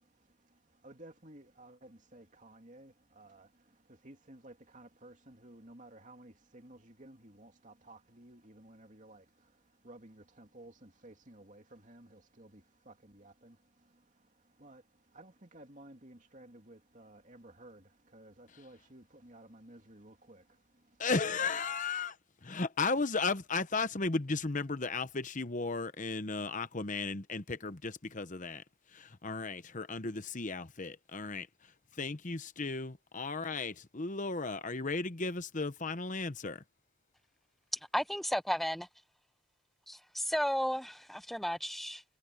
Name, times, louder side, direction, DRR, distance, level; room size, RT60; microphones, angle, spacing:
voice 1, 0.0-21.1, right 1 dB, 35° right, 2.7 m, -55 dB
voice 2, 21.0-22.2 22.4-28.6 28.9-31.5 32.0-36.6, left 4 dB, 35° left, 0.9 m, -35 dB
voice 3, 37.9-38.9 39.9-42.0, equal, ahead, 0.6 m, -33 dB
head